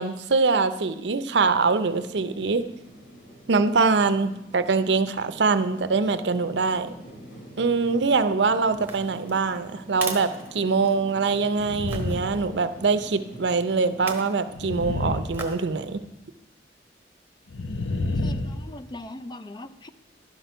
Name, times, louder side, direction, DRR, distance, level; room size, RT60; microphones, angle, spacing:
voice 1, 0.0-2.6 3.5-6.9 7.6-16.0, right 4 dB, 75° right, 11 dB, 0.6 m, -23 dB
sound 1, 1.3-14.4, right 1 dB, 55° left, 3.4 m, -46 dB
sound 2, 8.8-11.2 11.9-12.2 13.9-14.4 15.3-15.7 16.2-16.3, right 3 dB, 10° right, 1.0 m, -37 dB
sound 3, 11.6-12.5 12.8-13.0 14.5-16.0 17.5-18.8, left 2 dB, 80° left, 0.7 m, -29 dB
voice 2, 18.2-19.9, left 1 dB, 25° left, 11 dB, 0.4 m, -40 dB
11.5 x 6.0 x 5.6 m, 0.88 s
head